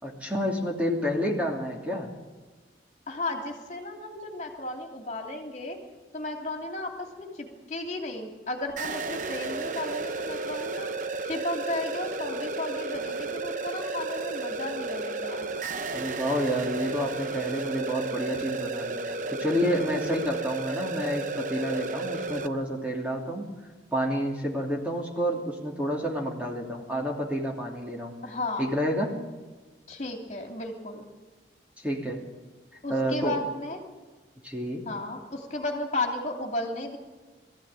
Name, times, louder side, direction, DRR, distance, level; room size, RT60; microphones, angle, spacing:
voice 1, 0.0-2.1 15.9-23.5 23.9-28.1 28.6-29.1 31.8-32.2 32.9-33.4 34.4-34.8, equal, 10° right, -2 dB, 2.8 m, -29 dB
voice 2, 3.1-5.8 6.1-10.9 11.3-15.5 28.2-28.7 29.9-31.1 32.8-33.8 34.8-37.0, left 2 dB, 40° left, 1 dB, 2.9 m, -34 dB
sound 1, 8.8-22.5, right 3 dB, 45° right, 0.8 m, -33 dB
21.5 x 15.0 x 9.0 m, 1.3 s
head